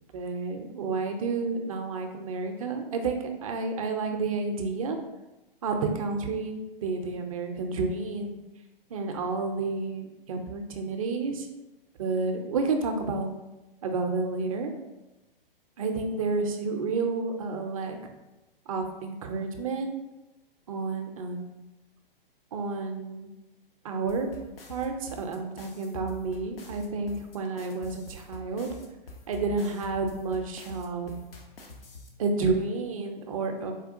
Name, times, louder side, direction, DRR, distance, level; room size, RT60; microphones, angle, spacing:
voice 1, 0.1-5.0 5.6-8.4 8.9-11.5 12.0-13.3 13.8-14.7 15.8-18.1 18.7-20.0 20.7-21.5 22.5-23.3 23.8-24.3 24.7-28.7 29.3-31.1 32.2-33.7, right 4 dB, 40° right, 5 dB, 0.4 m, -30 dB
sound 1, 24.1-32.1, left 3 dB, 75° left, 0.6 m, -45 dB
3.6 x 2.3 x 2.5 m, 1.0 s
figure-of-eight pair, 125°, 29 cm